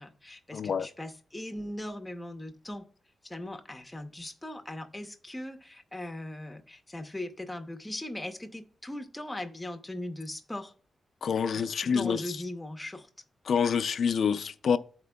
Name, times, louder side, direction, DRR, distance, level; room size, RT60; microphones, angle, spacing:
voice 1, 0.0-2.9 3.2-10.7 11.5-13.1, left 1 dB, 10° left, 0.7 m, -39 dB
voice 2, 0.5-0.9 11.2-12.2 13.5-14.8, left 6 dB, 65° left, 0.3 m, -27 dB
11.5 x 4.3 x 2.2 m
wide cardioid pair, 110°, 0 cm